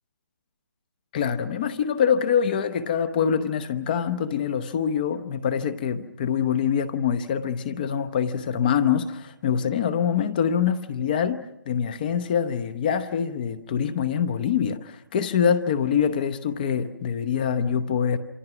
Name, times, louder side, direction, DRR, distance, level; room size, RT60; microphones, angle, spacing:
voice 1, 1.1-18.2, left 7 dB, 25° left, 11 dB, 0.9 m, -25 dB
28.0 x 24.5 x 6.0 m, 0.92 s
hypercardioid pair, 165°, 11 cm